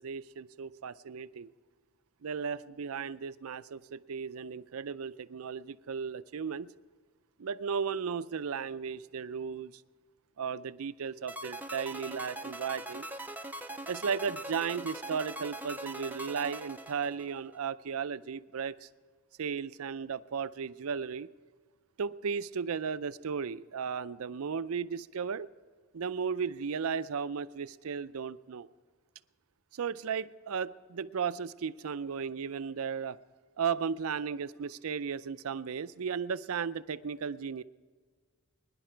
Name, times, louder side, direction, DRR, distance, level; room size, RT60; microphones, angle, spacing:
voice 1, 0.0-1.5 2.2-6.7 7.4-9.7 10.4-13.1 13.9-18.9 19.4-21.3 22.0-25.5 25.9-28.7 29.7-33.2 33.6-37.6, right 6 dB, 75° right, 16 dB, 0.5 m, -35 dB
sound 1, 11.3-17.6, right 1 dB, 10° right, 0.5 m, -41 dB
22.0 x 11.0 x 4.5 m, 1.5 s
head